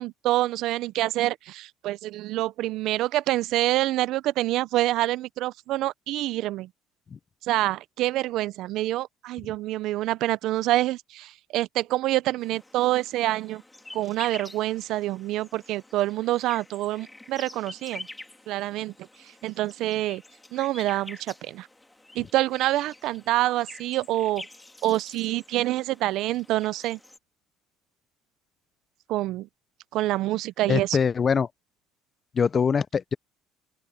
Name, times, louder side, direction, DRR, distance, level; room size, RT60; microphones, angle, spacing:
voice 1, 0.0-6.7 7.4-13.6 13.9-18.1 18.5-18.9 19.4-20.2 20.5-21.7 22.1-24.5 24.8-27.0 29.1-29.5 29.9-31.0, right 16 dB, 70° right, 0.6 m, -26 dB
sound 1, 12.4-27.2, left 2 dB, 10° left, 2.2 m, -47 dB
voice 2, 30.7-31.5 32.3-33.1, left 6 dB, 35° left, 0.5 m, -23 dB
open air
supercardioid pair, 95°, 0 cm